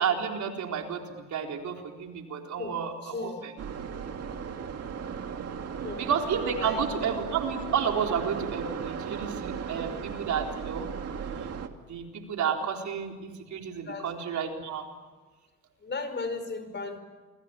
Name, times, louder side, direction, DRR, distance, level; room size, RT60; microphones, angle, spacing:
voice 1, 0.0-3.5 6.0-10.9 11.2-11.5 11.9-14.9, right 7 dB, 70° right, 2 dB, 4.2 m, -31 dB
voice 2, 3.0-3.4 5.8-6.1 6.6-6.8 13.8-14.1 15.8-17.0, left 3 dB, 35° left, 9 dB, 5.3 m, -35 dB
sound 1, 3.6-11.7, right 7 dB, 55° right, 2.3 m, -36 dB
28.5 x 22.0 x 9.0 m, 1.3 s
cardioid pair, 90°, 30 cm